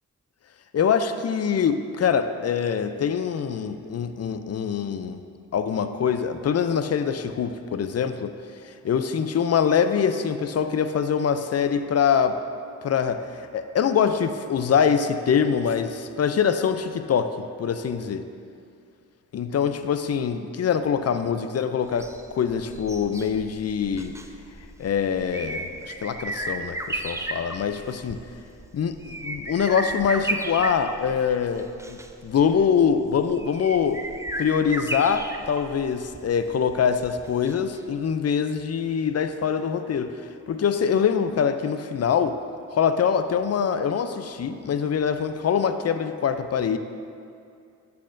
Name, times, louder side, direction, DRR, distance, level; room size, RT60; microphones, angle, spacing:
voice 1, 0.7-5.2 5.5-8.4 8.6-12.4 12.8-18.3 19.3-22.1 22.4-24.2 24.8-28.2 28.7-34.0 34.4-40.2 40.5-42.4 42.7-46.8, left 7 dB, 50° left, 10 dB, 0.4 m, -24 dB
sound 1, 21.9-37.8 38.1-38.2, right 1 dB, 10° right, 0.4 m, -35 dB
10.0 x 5.8 x 2.6 m, 2.4 s
supercardioid pair, 40°, 34 cm